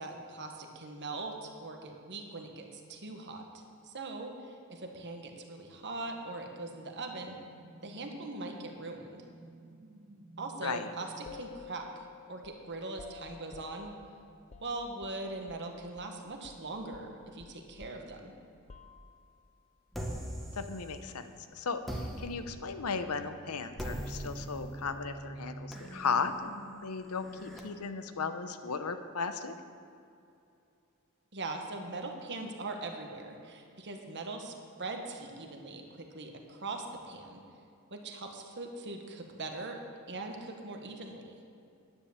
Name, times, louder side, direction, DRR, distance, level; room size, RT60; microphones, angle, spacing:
voice 1, 0.0-7.4 7.8-9.2 10.4-13.9 14.6-18.3 31.3-34.5 34.8-37.4 37.9-39.8 40.1-41.4, right 2 dB, 55° right, 3 dB, 1.5 m, -41 dB
sound 1, 6.1-12.4, right 2 dB, 25° right, 0.7 m, -56 dB
voice 2, 10.6-10.9 20.6-29.5, left 5 dB, 85° left, 9 dB, 0.8 m, -36 dB
sound 2, 11.3-15.7 16.0-16.2 16.4-19.4, left 5 dB, 30° left, 0.6 m, -53 dB
sound 3, 19.9-21.3 21.8-27.6, right 1 dB, ahead, 1.4 m, -42 dB
10.0 x 10.0 x 7.3 m, 2.6 s
head